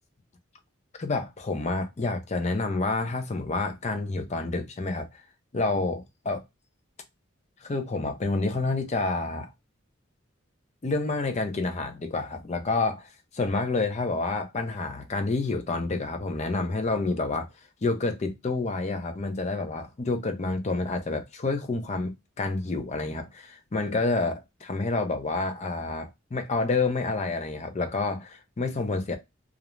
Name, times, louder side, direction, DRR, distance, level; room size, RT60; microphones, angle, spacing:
voice 1, 1.0-5.1 5.5-6.4 7.6-9.5 10.8-17.5 17.8-29.2, left 3 dB, 35° left, 0.5 m, -28 dB
2.5 x 2.0 x 3.0 m
head